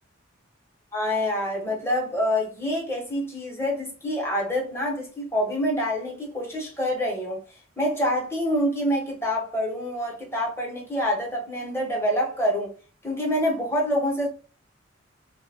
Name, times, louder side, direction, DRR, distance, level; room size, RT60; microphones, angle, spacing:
voice 1, 0.9-7.4 7.8-12.7 13.0-14.3, equal, 10° left, 0.7 m, -26 dB
2.7 x 2.1 x 2.7 m
head